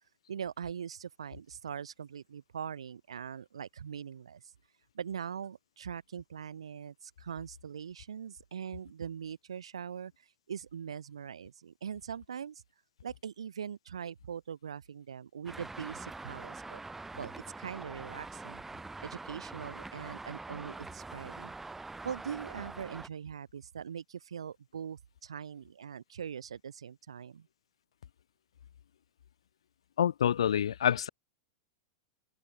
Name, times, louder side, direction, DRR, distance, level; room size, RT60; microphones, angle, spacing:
voice 1, 0.3-4.4 4.9-10.1 10.5-12.6 13.0-16.8 17.2-17.3 17.6-18.6 19.0-21.5 22.0-27.5, right 7 dB, 90° right, 3.7 m, -42 dB
Traffic noise roadway noise, 15.5-23.1, right 3 dB, 10° right, 1.4 m, -44 dB
voice 2, 30.0-31.1, left 9 dB, 80° left, 1.0 m, -27 dB
hypercardioid pair, 115°, 3 cm